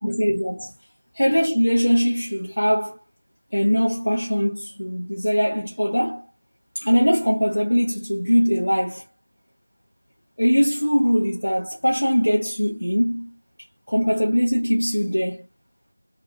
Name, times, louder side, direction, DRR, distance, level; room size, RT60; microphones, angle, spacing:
voice 1, 0.0-0.7 1.1-3.0 3.5-6.2 6.7-9.0 10.4-13.3 13.9-15.4, equal, 70° left, 0.8 m, -21 dB
2.8 x 2.2 x 2.5 m
figure-of-eight pair, 175°, 0 cm